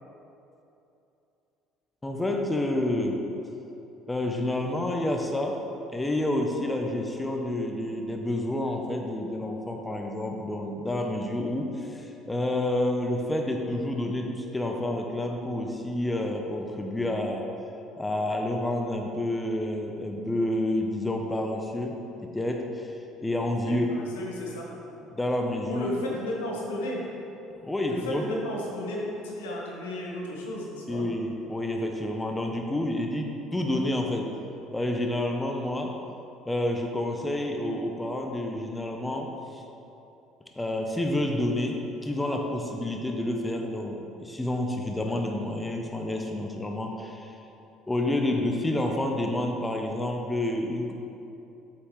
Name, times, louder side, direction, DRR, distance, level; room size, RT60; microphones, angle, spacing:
voice 1, 2.0-3.3 4.1-5.6 5.9-17.5 18.0-22.9 23.2-23.9 25.1-25.9 27.6-28.3 30.9-34.3 34.7-36.0 36.5-39.6 40.6-47.4 47.9-50.9, left 1 dB, 15° left, 2 dB, 0.7 m, -29 dB
voice 2, 23.6-24.7 25.7-27.1 27.9-31.1, left 1 dB, 80° left, -3 dB, 1.2 m, -33 dB
7.9 x 5.9 x 3.2 m, 2.9 s
hypercardioid pair, 60°, 0 cm